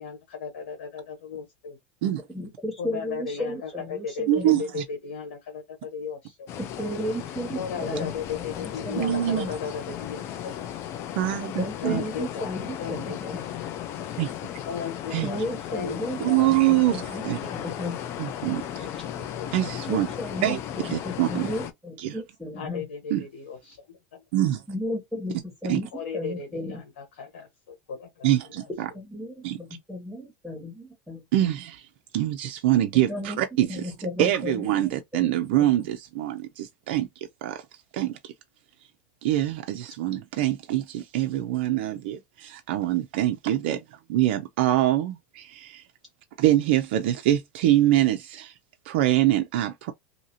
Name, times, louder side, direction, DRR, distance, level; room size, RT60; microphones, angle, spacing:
voice 1, 0.0-1.8 2.8-6.5 7.5-10.6 11.8-13.5 14.7-16.5 19.0-19.7 22.6-23.8 24.1-24.2 25.9-28.3, left 5 dB, 90° left, 1.2 m, -36 dB
voice 2, 2.3-4.6 6.6-9.1 9.3-9.6 11.6-13.4 15.2-16.2 16.7-17.2 17.5-18.0 18.9-19.0 19.9-22.8 24.7-26.8 28.9-31.5 33.1-33.4 33.7-35.3, left 1 dB, ahead, 1.6 m, -34 dB
voice 3, 4.3-4.8 9.0-9.5 11.2-12.0 14.2-14.3 15.1-15.3 16.2-17.4 18.2-18.9 19.5-20.1 20.4-21.5 22.0-22.2 23.1-23.2 24.3-24.6 25.7-25.8 28.2-28.9 29.4-29.6 31.3-31.9 32.1-33.9 34.2-37.1 37.4-37.6 37.9-38.3 39.2-45.8 46.4-48.5 48.9-49.9, right 13 dB, 70° right, 0.5 m, -24 dB
sound 1, 6.5-21.7, left 10 dB, 45° left, 0.6 m, -36 dB
2.8 x 2.7 x 2.7 m
supercardioid pair, 120°, 6 cm